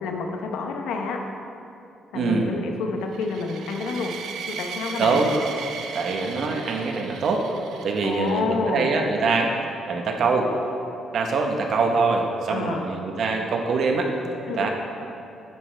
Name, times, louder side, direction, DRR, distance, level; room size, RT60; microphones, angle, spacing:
voice 1, 0.0-1.2 2.1-4.1 4.5-5.2 8.0-8.9 12.5-12.9 14.5-14.7, left 4 dB, 90° left, 3 dB, 0.8 m, -28 dB
voice 2, 2.1-2.5 5.0-5.3 5.9-7.5 7.8-9.6 9.9-10.5 11.1-14.1 14.5-14.7, right 4 dB, 65° right, 3 dB, 1.0 m, -23 dB
sound 1, 3.1-8.4, right 6 dB, 85° right, 0.6 m, -37 dB
9.1 x 8.1 x 3.3 m, 2.7 s
cardioid pair, 90°, 0 cm